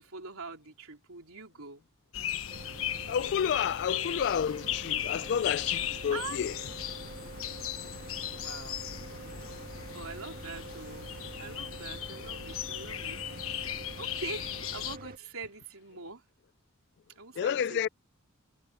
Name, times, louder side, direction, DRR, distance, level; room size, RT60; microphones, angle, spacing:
voice 1, 0.0-1.8 6.1-6.4 8.3-8.9 9.9-13.2 13.6-16.2 17.2-17.9, right 4 dB, 75° right, 3.8 m, -44 dB
sound 1, 2.1-15.0, left 10 dB, 70° left, 1.3 m, -37 dB
Mechanical fan, 2.5-15.2, right 2 dB, 40° right, 2.1 m, -46 dB
voice 2, 3.1-6.5 17.4-17.9, left 8 dB, 55° left, 0.3 m, -30 dB
head